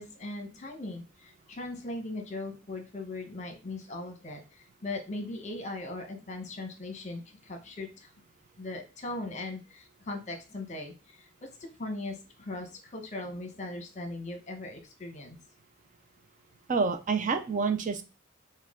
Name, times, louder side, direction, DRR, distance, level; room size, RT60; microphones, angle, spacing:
voice 1, 0.0-8.1 8.6-15.4, left 2 dB, 35° left, 5 dB, 1.0 m, -39 dB
voice 2, 16.7-18.0, right 4 dB, 40° right, 7 dB, 0.5 m, -28 dB
5.5 x 2.3 x 3.7 m, 0.30 s
head